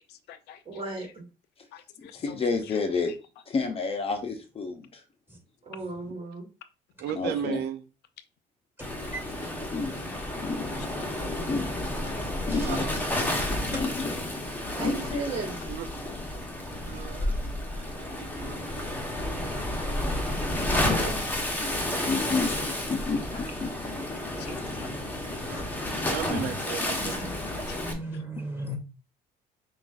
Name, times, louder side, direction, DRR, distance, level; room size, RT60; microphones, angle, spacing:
voice 1, 0.1-0.6 1.0-1.1 1.7-2.4 2.7-2.8 24.4-24.6 26.3-26.8 27.1-27.8 28.1-28.2, left 11 dB, 75° left, 11 dB, 0.5 m, -48 dB
voice 2, 0.7-1.3 5.6-6.5 14.8-15.6 20.5-21.3, right 2 dB, 35° right, 0 dB, 1.9 m, -36 dB
voice 3, 2.1-3.1 3.5-5.0 7.1-7.6 9.7-9.9 10.4-10.7 11.5-11.7 12.5-12.9 13.7-14.3 14.8-14.9 22.0-22.5 22.9-23.9 24.6-24.8 26.1-26.4 28.6-28.8, left 4 dB, 35° left, 6 dB, 0.7 m, -30 dB
voice 4, 7.0-7.8 12.4-13.0 15.7-15.8 16.9-17.4 17.8-18.9 26.1-27.1, right 9 dB, 75° right, 10 dB, 0.4 m, -35 dB
Waves surf, 8.8-27.9, left 1 dB, 10° left, 0.9 m, -31 dB
voice 5, 12.5-12.8 13.7-13.8 14.7-14.8 16.7-17.2 18.5-18.7 19.3-19.6 21.9-22.3 24.7-24.9 25.5-25.6 26.0-26.5 27.0-27.3 27.8-28.8, right 1 dB, 15° right, 0 dB, 2.3 m, -40 dB
6.0 x 2.4 x 2.5 m, 0.31 s
cardioid pair, 110°, 17 cm